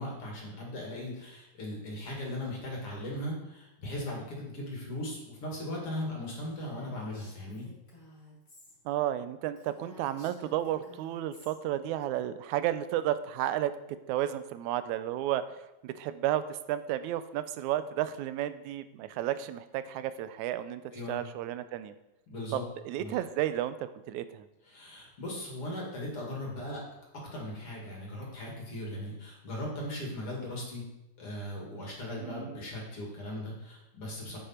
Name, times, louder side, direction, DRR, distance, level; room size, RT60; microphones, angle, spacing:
voice 1, 0.0-7.7 20.9-21.2 22.3-22.6 23.0-23.1 24.7-26.8 27.3-30.8 31.2-34.4, left 1 dB, 50° left, -3 dB, 3.1 m, -38 dB
Female speech woman speaking, 6.3-8.8 9.1-9.2 9.5-11.5, left 2 dB, 30° left, 3.8 m, -55 dB
voice 2, 8.9-13.7 14.1-15.5 15.8-21.9 22.5-24.5 32.2-32.6, right 12 dB, 85° right, 13 dB, 2.0 m, -32 dB
9.0 x 8.6 x 4.4 m, 0.95 s
omnidirectional pair, 3.4 m